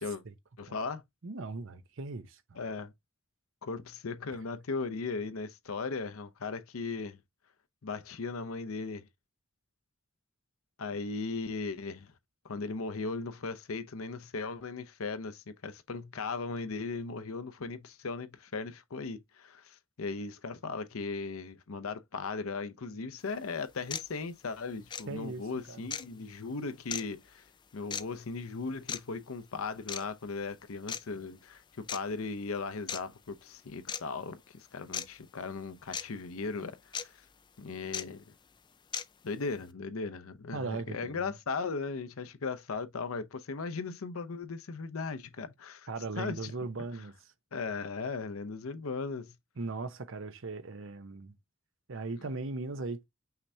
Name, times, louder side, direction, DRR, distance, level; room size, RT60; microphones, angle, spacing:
voice 1, 0.6-1.0 2.6-2.9 3.6-7.2 7.8-9.0 10.8-12.1 12.4-27.4 27.7-37.3 37.6-38.3 39.2-45.9 46.2-46.5 47.5-49.4, left 4 dB, 85° left, 0.7 m, -37 dB
voice 2, 1.2-2.6 25.1-25.9 40.5-41.3 45.9-47.3 49.6-51.3 51.9-53.0, right 3 dB, 65° right, 0.8 m, -38 dB
sound 1, 23.2-23.3 23.9-24.1 24.9-25.0 25.9-26.1 26.9-27.0 27.9-28.0 28.9-29.0 29.9-30.1 30.9-31.0 31.9-32.0 32.9-33.0 33.9-34.0 34.9-35.1 35.9-36.0 36.9-37.0 37.9-38.0 38.9-39.0, left 7 dB, 20° left, 0.4 m, -35 dB
5.8 x 3.3 x 2.7 m
head